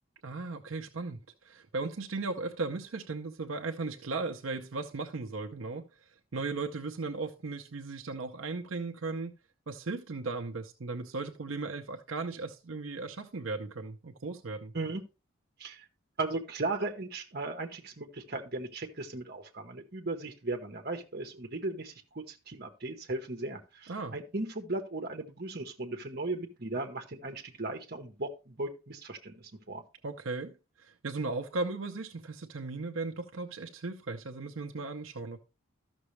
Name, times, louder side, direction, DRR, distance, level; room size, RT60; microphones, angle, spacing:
voice 1, 0.2-5.8 6.3-9.3 9.7-14.7 23.9-24.1 30.0-35.4, right 3 dB, 75° right, 0.7 m, -37 dB
voice 2, 16.2-29.8, right 2 dB, 50° right, 1.1 m, -37 dB
13.0 x 6.1 x 3.2 m
head